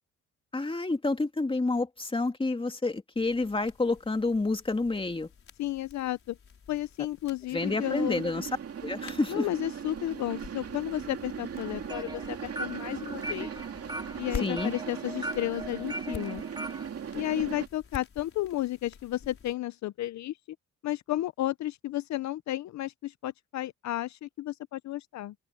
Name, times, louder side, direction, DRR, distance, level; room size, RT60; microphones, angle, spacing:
voice 1, 0.5-5.3 7.5-8.5 8.8-9.5 14.4-14.7, left 3 dB, 15° left, 2.6 m, -29 dB
sound 1, 3.1-19.5, left 6 dB, 45° left, 4.6 m, -48 dB
voice 2, 5.6-6.4 6.7-8.2 9.3-13.5 14.2-16.4 17.1-20.4 20.8-25.3, left 14 dB, 65° left, 0.6 m, -33 dB
sound 2, 7.5-17.7, right 8 dB, 50° right, 2.3 m, -39 dB
sound 3, 11.6-16.9, right 1 dB, 15° right, 2.0 m, -40 dB
open air
cardioid pair, 90°, 30 cm